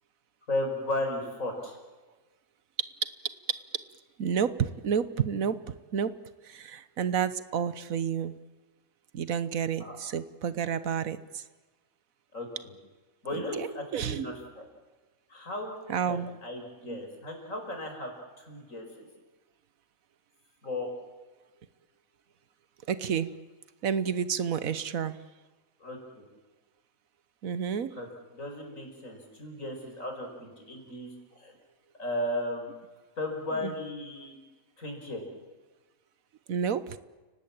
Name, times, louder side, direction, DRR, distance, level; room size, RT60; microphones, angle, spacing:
voice 1, 0.5-1.8 9.8-10.0 12.3-12.7 13.2-14.6 15.3-18.1 18.4-19.1 20.6-20.9 25.8-26.2 27.9-28.1 28.3-31.5 32.0-32.8 33.2-34.4 34.8-35.2, left 1 dB, 75° left, 3 dB, 5.6 m, -35 dB
voice 2, 4.2-6.1 6.4-8.4 9.1-11.4 13.3-14.3 15.9-16.3 16.8-17.0 22.9-23.4 23.8-25.2 27.4-27.9 33.6-33.7 36.5-37.0, right 7 dB, 90° right, 14 dB, 1.5 m, -30 dB
29.5 x 18.5 x 8.8 m, 1.3 s
omnidirectional pair, 1.4 m